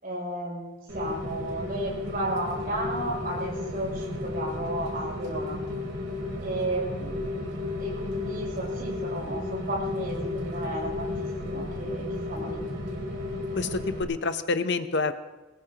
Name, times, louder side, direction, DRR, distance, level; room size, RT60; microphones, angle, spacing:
voice 1, 0.0-5.6 6.4-7.2 7.8-11.1 11.4-12.6, right 1 dB, 45° right, -4 dB, 7.1 m, -33 dB
Rain, 0.9-14.0, left 2 dB, 70° right, 3.9 m, -33 dB
voice 2, 13.5-15.1, left 4 dB, 60° left, 10 dB, 0.8 m, -27 dB
22.5 x 19.0 x 3.0 m, 1.2 s
head